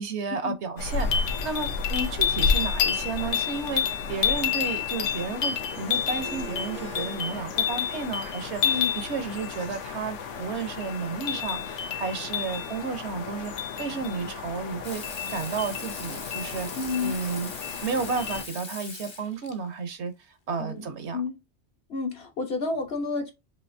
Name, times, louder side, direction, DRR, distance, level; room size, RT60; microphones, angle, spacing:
voice 1, 0.0-16.7 17.0-17.5 17.8-20.1 20.5-21.2, right 5 dB, 70° right, 1.1 m, -32 dB
sound 1, 0.8-18.4, left 7 dB, 85° left, 1.1 m, -30 dB
Harp, 5.5-10.5, right 4 dB, 90° right, 2.4 m, -46 dB
voice 2, 8.6-8.9 16.8-17.2 20.6-20.9 21.1-21.4 21.9-23.3, left 4 dB, 60° left, 1.3 m, -30 dB
Water tap faucet / Sink (filling or washing), 14.8-19.6 21.1-21.2, left 3 dB, 30° left, 0.7 m, -41 dB
5.5 x 2.7 x 2.6 m
omnidirectional pair, 1.2 m